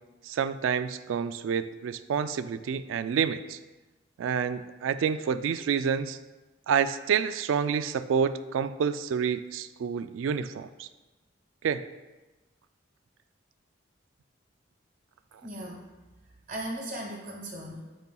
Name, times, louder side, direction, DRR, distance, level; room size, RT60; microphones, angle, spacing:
voice 1, 0.2-3.6 4.2-6.2 6.7-10.9 11.6-11.9, right 7 dB, 85° right, 12 dB, 0.3 m, -28 dB
voice 2, 15.4-15.8 16.5-18.0, right 1 dB, 45° right, -2 dB, 1.0 m, -37 dB
12.0 x 4.2 x 2.3 m, 1.2 s
head